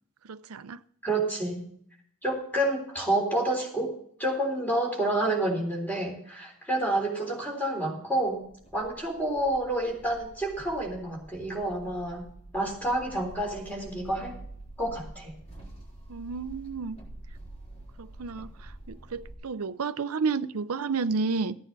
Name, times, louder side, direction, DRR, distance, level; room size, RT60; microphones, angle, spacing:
voice 1, 0.3-0.8 16.1-17.0 18.0-21.5, right 4 dB, 75° right, 0.6 m, -31 dB
voice 2, 1.0-1.7 2.2-3.9 4.2-8.4 8.7-12.3 12.5-14.4 14.8-15.3, right 1 dB, 10° left, 3.8 m, -29 dB
sound 1, 8.2-19.3, right 2 dB, 30° left, 3.9 m, -47 dB
15.0 x 9.5 x 4.1 m
head